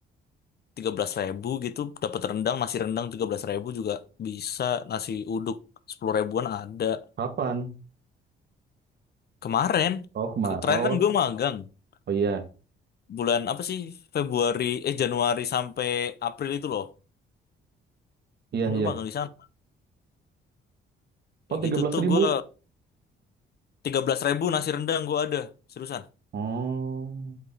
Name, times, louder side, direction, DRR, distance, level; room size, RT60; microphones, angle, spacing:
voice 1, 0.8-5.6 5.9-7.0 9.4-10.0 10.4-11.7 13.1-16.9 18.7-19.3 21.5-22.4 23.8-25.5 25.8-26.0, left 8 dB, 55° left, 0.8 m, -28 dB
voice 2, 7.2-7.8 10.2-11.0 12.1-12.4 18.5-18.9 21.5-22.3 26.3-27.4, right 5 dB, 55° right, 1.8 m, -27 dB
8.1 x 4.9 x 4.1 m
cardioid pair, 90°, 20 cm